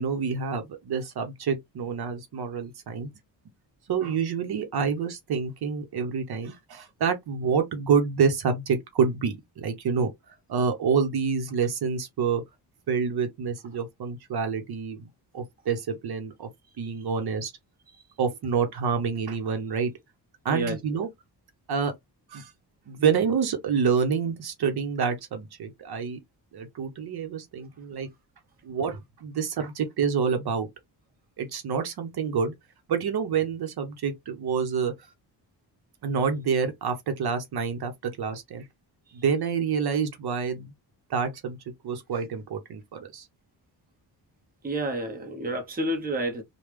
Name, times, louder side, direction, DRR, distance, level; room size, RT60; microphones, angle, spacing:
voice 1, 0.0-3.1 3.9-10.1 10.5-12.4 12.9-15.1 15.3-16.5 16.8-17.5 18.2-19.9 20.4-21.1 21.7-21.9 22.3-22.5 22.9-26.2 26.5-28.1 28.6-30.7 31.4-32.5 32.9-34.9 36.0-38.6 39.1-40.7 41.1-41.6 41.8-43.3, right 6 dB, 60° right, 0.8 m, -27 dB
voice 2, 44.6-46.4, right 1 dB, 20° right, 0.8 m, -29 dB
3.3 x 2.2 x 3.3 m
wide cardioid pair, 150°, 43 cm